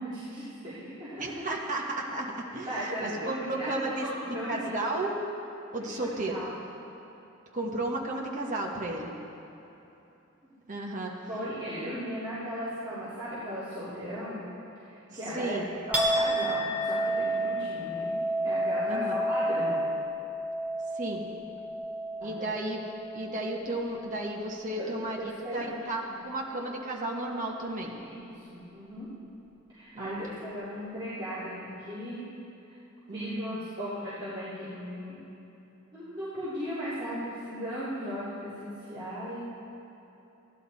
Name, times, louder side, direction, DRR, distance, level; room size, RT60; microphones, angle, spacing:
voice 1, 0.0-1.5 2.6-4.7 5.8-5.9 6.3-6.5 8.7-8.8 10.4-10.5 10.9-14.5 14.7-15.6 15.9-18.1 18.4-19.9 22.2-22.5 24.6-24.9 25.2-26.2 28.0-29.1 29.7-32.2 32.6-32.8 33.1-35.2 35.9-39.4, equal, 20° right, -14 dB, 2.8 m, -37 dB
voice 2, 1.2-2.7 3.0-5.2 5.7-6.4 7.5-9.1 10.7-11.1 15.1-15.7 18.9-19.2 20.9-21.3 22.2-22.9 23.1-27.9 29.9-30.2 33.1-33.6, right 2 dB, 35° right, -2 dB, 1.3 m, -33 dB
Chink clink, 15.9-23.6 24.0-24.6, right 1 dB, 5° right, 1.0 m, -31 dB
15.5 x 11.0 x 4.2 m, 3.0 s
head